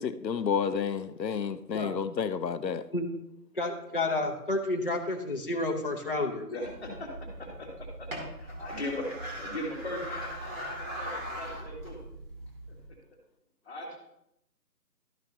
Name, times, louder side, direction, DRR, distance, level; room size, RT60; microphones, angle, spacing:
voice 1, 0.0-2.8, left 6 dB, 85° left, 12 dB, 0.8 m, -30 dB
voice 2, 3.5-6.5, left 2 dB, 35° left, 0 dB, 0.7 m, -30 dB
voice 3, 6.5-7.1 7.4-12.0 13.1-13.2 13.6-14.0, left 1 dB, 10° left, -11 dB, 1.7 m, -39 dB
sound 1, 6.6-12.9, right 1 dB, 50° right, 2.4 m, -40 dB
12.5 x 6.1 x 2.7 m, 0.78 s
figure-of-eight pair, 170°, 49 cm